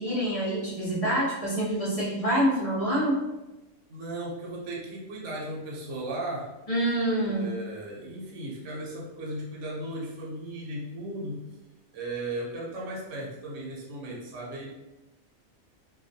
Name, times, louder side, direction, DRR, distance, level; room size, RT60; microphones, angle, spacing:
voice 1, 0.0-3.2 6.7-7.4, right 1 dB, 40° left, -7 dB, 0.5 m, -26 dB
voice 2, 3.9-6.5 7.2-11.5 11.9-14.7, right 1 dB, 60° right, -4 dB, 0.9 m, -36 dB
2.3 x 2.2 x 2.6 m, 1.0 s
omnidirectional pair, 1.5 m